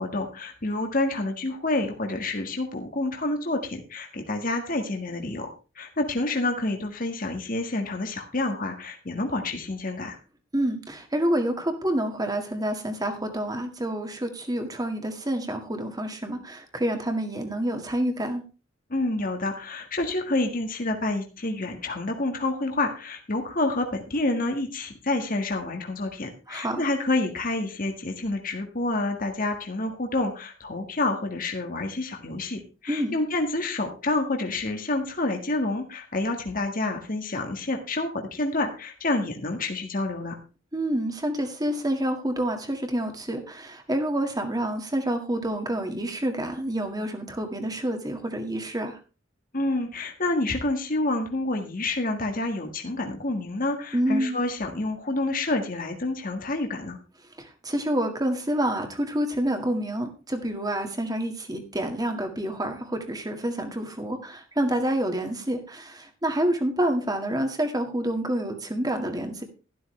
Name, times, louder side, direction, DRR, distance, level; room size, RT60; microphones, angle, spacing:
voice 1, 0.0-5.5 5.8-10.2 18.9-40.4 49.5-57.0, left 2 dB, 45° left, 4 dB, 1.8 m, -28 dB
voice 2, 10.5-18.4 26.5-26.8 32.9-33.2 40.7-49.0 53.9-54.4 57.4-69.4, right 1 dB, 20° right, 5 dB, 1.9 m, -28 dB
12.5 x 12.0 x 3.3 m, 0.33 s
head